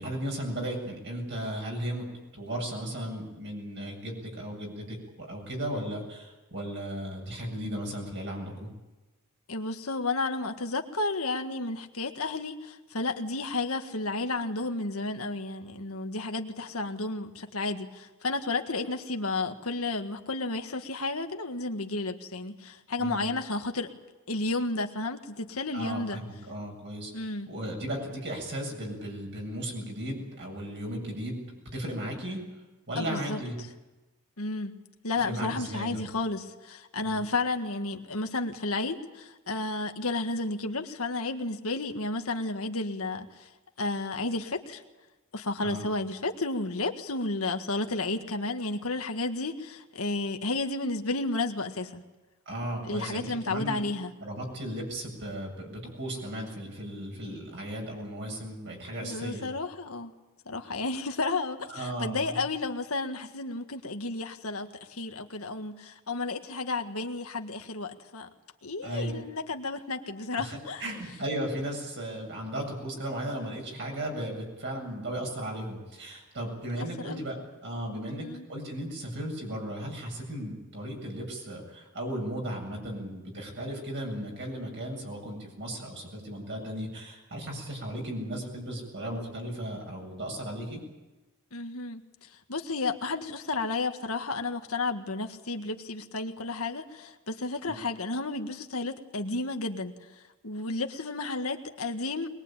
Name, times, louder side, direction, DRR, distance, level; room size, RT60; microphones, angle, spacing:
voice 1, 0.0-2.1 2.3-8.7 23.0-23.3 25.7-31.4 31.7-32.4 32.9-33.6 35.2-36.0 37.0-37.2 45.6-45.8 52.5-53.8 54.2-59.5 61.7-62.4 68.8-69.1 70.4-77.4 77.6-90.8 97.7-97.8, right 1 dB, 55° right, 1 dB, 7.7 m, -36 dB
voice 2, 9.5-23.9 24.3-26.2 27.1-27.5 33.0-33.4 34.4-34.7 35.0-43.5 43.8-44.8 45.3-52.0 52.8-54.1 59.0-60.1 60.4-68.3 68.6-70.8 76.8-77.2 78.2-78.4 91.5-100.0 100.4-102.3, left 3 dB, 75° left, 5 dB, 1.7 m, -32 dB
22.0 x 21.0 x 9.0 m, 1.1 s
head